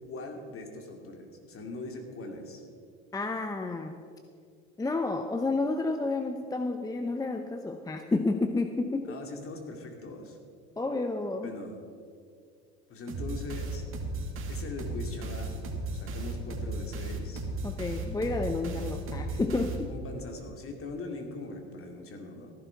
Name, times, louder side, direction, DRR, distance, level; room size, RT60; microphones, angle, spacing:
voice 1, 0.0-2.6 9.0-10.4 11.4-11.8 12.9-13.9 14.5-15.6 15.9-17.4 18.7-19.0 19.9-22.5, left 2 dB, 40° left, 3 dB, 2.5 m, -41 dB
voice 2, 3.1-3.9 4.8-9.2 10.8-11.5 17.6-19.9, left 3 dB, 10° left, 7 dB, 0.7 m, -30 dB
sound 1, 13.1-20.2, right 2 dB, 40° right, 2.2 m, -35 dB
15.0 x 11.0 x 4.6 m, 2.2 s
hypercardioid pair, 85°, 32 cm